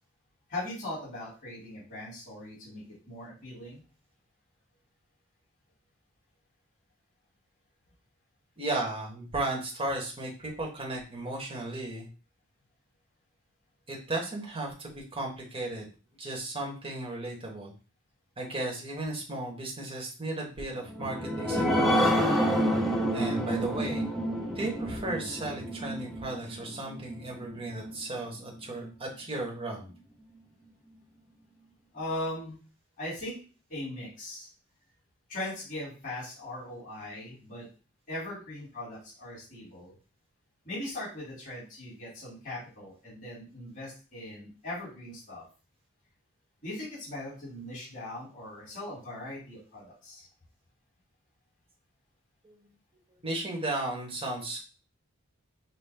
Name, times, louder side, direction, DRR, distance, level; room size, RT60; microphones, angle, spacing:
voice 1, 0.5-3.8 31.9-32.6 33.0-33.4 33.7-34.5 35.3-37.7 38.1-40.0 40.6-45.4 46.6-50.3, left 1 dB, 40° left, -7 dB, 2.4 m, -39 dB
voice 2, 8.6-12.1 13.9-15.9 16.2-17.7 18.4-22.2 23.1-24.1 24.5-29.9 52.4-52.5 53.1-54.6, right 2 dB, 25° right, -1 dB, 1.1 m, -35 dB
sound 1, 20.9-27.9 28.4-28.5 28.8-28.9, equal, ahead, 0.6 m, -28 dB
5.5 x 2.1 x 3.4 m, 0.35 s
head